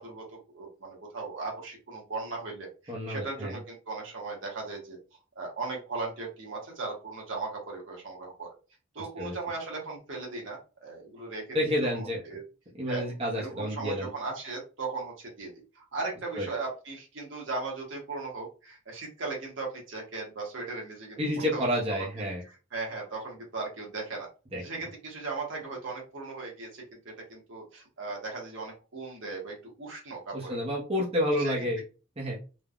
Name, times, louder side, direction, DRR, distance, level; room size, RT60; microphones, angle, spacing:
voice 1, 0.0-5.0 5.3-8.5 8.9-12.4 12.9-13.1 13.4-15.5 15.7-21.2 21.5-21.7 22.0-22.3 22.7-24.3 24.6-30.6 31.4-31.6, right 3 dB, 65° right, -1 dB, 1.0 m, -37 dB
voice 2, 2.9-3.6 9.2-9.3 11.5-12.2 12.8-14.1 16.4-16.5 21.2-22.4 24.5-24.6 30.3-31.8 32.2-32.4, equal, 30° right, -3 dB, 0.6 m, -29 dB
3.2 x 2.1 x 2.3 m, 0.33 s
head